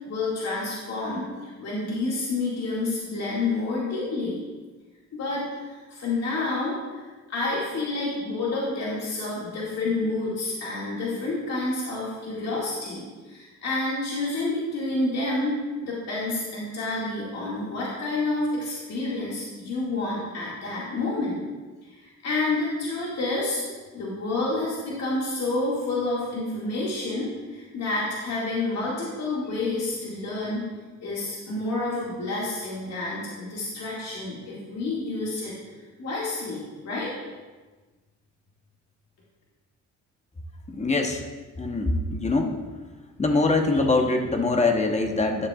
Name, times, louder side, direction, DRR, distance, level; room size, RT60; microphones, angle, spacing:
voice 1, 0.0-4.4 5.1-15.5 15.8-21.4 22.0-23.6 23.9-30.7 31.0-35.5 36.0-37.1, left 2 dB, 60° left, -6 dB, 2.2 m, -29 dB
voice 2, 40.7-41.2 41.6-42.6 43.2-45.5, left 3 dB, 25° left, 4 dB, 1.0 m, -23 dB
12.0 x 7.0 x 2.4 m, 1.3 s
cardioid pair, 90°, 30 cm